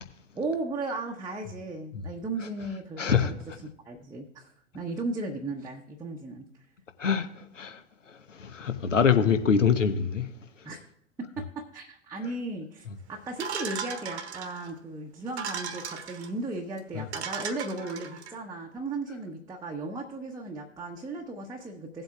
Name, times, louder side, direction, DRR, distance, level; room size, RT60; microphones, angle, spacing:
voice 1, 0.3-3.3 3.6-6.5 10.6-10.9 11.2-22.0, right 2 dB, 10° right, 0.8 m, -36 dB
voice 2, 3.0-3.3 7.0-7.8 8.1-10.3 16.9-17.1, left 6 dB, 75° left, 1.0 m, -25 dB
sound 1, 13.4-14.7 15.3-16.3 16.8-16.9 17.1-18.3, right 7 dB, 60° right, 1.2 m, -36 dB
16.5 x 7.9 x 2.4 m
figure-of-eight pair, 95°, 37 cm